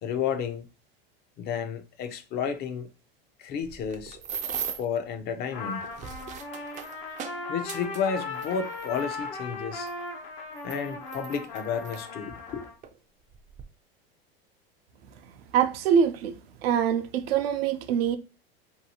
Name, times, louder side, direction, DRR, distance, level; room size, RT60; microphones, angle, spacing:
voice 1, 0.0-0.7 1.4-2.9 3.4-4.2 4.8-5.9 7.5-9.9 10.6-12.7, left 7 dB, 35° left, 0.4 m, -31 dB
sound 1, 3.6-5.0 5.7-9.0 9.9-10.0 10.6-12.0 12.8-13.0 13.3-13.6, right 8 dB, 25° right, 0.3 m, -38 dB
Trumpet, 5.5-12.7, left 3 dB, 75° left, 1.0 m, -37 dB
voice 2, 15.5-16.4 16.6-18.2, right 8 dB, 80° right, 0.5 m, -24 dB
2.7 x 2.6 x 2.7 m
supercardioid pair, 110°, 30 cm